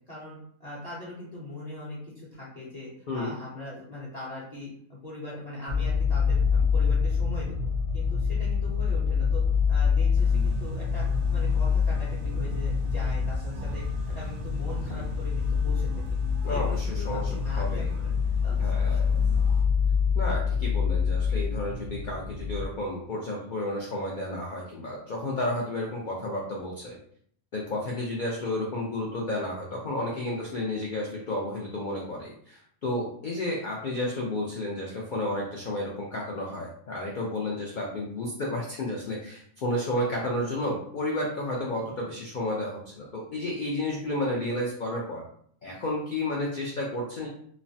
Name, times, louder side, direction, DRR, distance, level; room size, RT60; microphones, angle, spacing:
voice 1, 0.1-7.7 7.9-9.4 9.7-15.9 16.4-18.1 18.4-19.1, left 1 dB, 40° left, -7 dB, 0.6 m, -41 dB
sound 1, 5.7-22.7, left 6 dB, 65° right, 0.7 m, -26 dB
sound 2, 10.1-19.6, right 1 dB, 85° right, 1.0 m, -43 dB
voice 2, 16.4-17.9 18.6-19.1 20.1-27.0 27.5-45.2 45.6-47.3, left 1 dB, 80° left, -2 dB, 0.4 m, -32 dB
3.1 x 2.0 x 2.6 m, 0.63 s
omnidirectional pair, 1.4 m